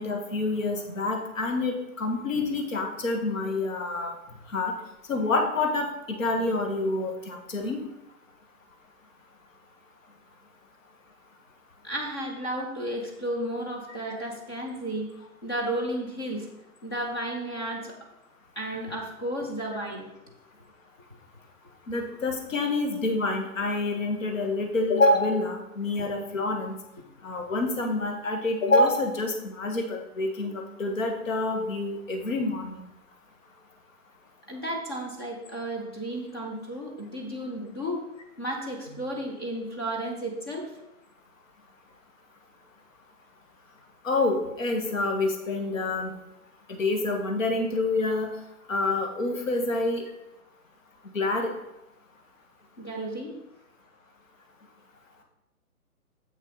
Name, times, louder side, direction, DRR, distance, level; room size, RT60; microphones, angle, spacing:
voice 1, 0.0-4.1 4.5-4.7 5.1-5.9 6.2-7.8 21.9-26.7 27.2-32.8 44.0-46.1 46.7-48.3 48.7-50.0 51.1-51.5, left 2 dB, 60° left, 3 dB, 1.8 m, -27 dB
voice 2, 11.8-15.1 15.4-16.5 16.8-18.0 18.6-20.1 34.5-38.0 38.4-40.7 52.8-53.3, right 1 dB, 15° left, 0 dB, 0.6 m, -33 dB
7.6 x 6.0 x 4.1 m, 0.89 s
figure-of-eight pair, 140°, 45 cm